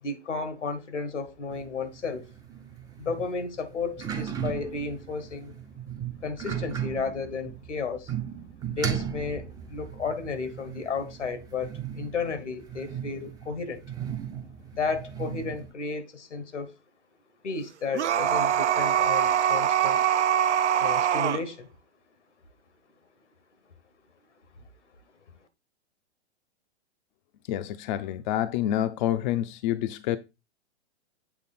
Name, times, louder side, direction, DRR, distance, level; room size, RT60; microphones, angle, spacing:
voice 1, 0.0-2.3 3.0-5.5 6.2-8.1 8.7-13.8 14.7-16.7 17.4-20.0 20.8-21.7, left 4 dB, 85° left, 1.4 m, -33 dB
sound 1, 1.5-15.7, right 8 dB, 10° right, 0.5 m, -37 dB
sound 2, 17.9-21.4, right 9 dB, 80° right, 0.6 m, -23 dB
voice 2, 27.5-30.2, left 12 dB, 45° left, 0.5 m, -28 dB
7.7 x 3.2 x 4.2 m
hypercardioid pair, 115°, 35 cm